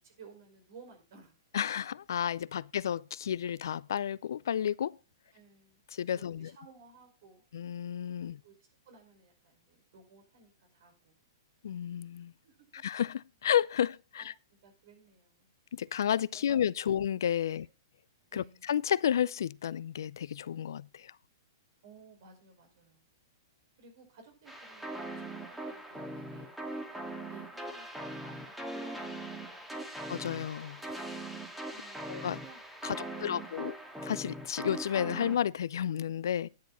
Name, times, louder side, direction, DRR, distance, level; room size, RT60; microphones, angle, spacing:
voice 1, 0.0-1.3 5.3-5.8 6.1-7.4 8.4-11.2 12.4-12.8 14.2-14.3 14.6-15.5 16.3-16.6 16.8-16.9 17.5-17.6 18.3-18.7 21.8-23.1 23.8-27.0 27.3-29.4 29.7-29.9 30.8-31.1 31.7-32.6 32.9-33.6, right 4 dB, 60° right, 5.4 m, -56 dB
voice 2, 1.5-5.0 5.9-6.5 7.5-8.4 11.6-12.3 12.7-14.3 15.7-17.7 18.3-21.1 30.1-30.8 32.1-32.4 32.8-33.7 34.0-36.5, left 9 dB, 70° left, 0.4 m, -32 dB
sound 1, 24.5-35.4, right 1 dB, 5° right, 2.0 m, -41 dB
10.5 x 9.5 x 4.2 m
hypercardioid pair, 115°, 2 cm